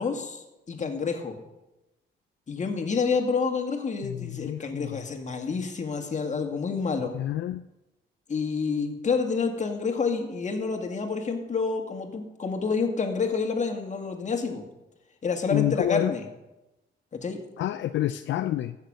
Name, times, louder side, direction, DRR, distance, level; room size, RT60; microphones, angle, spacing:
voice 1, 0.0-1.3 2.5-7.1 8.3-14.6 15.2-16.2 17.1-17.4, left 5 dB, 35° left, 4 dB, 2.1 m, -28 dB
voice 2, 4.0-5.0 7.1-7.6 15.5-16.1 17.6-18.8, left 13 dB, 70° left, 10 dB, 0.5 m, -28 dB
15.0 x 6.6 x 6.5 m, 0.99 s
cardioid pair, 90°, 20 cm